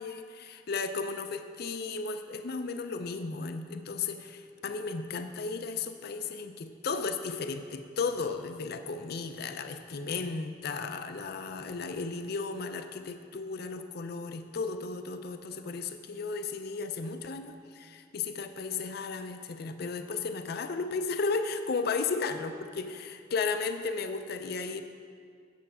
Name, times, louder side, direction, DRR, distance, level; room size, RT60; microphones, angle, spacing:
voice 1, 0.0-24.8, left 4 dB, 60° left, 8 dB, 0.5 m, -34 dB
8.9 x 7.3 x 5.5 m, 2.2 s
head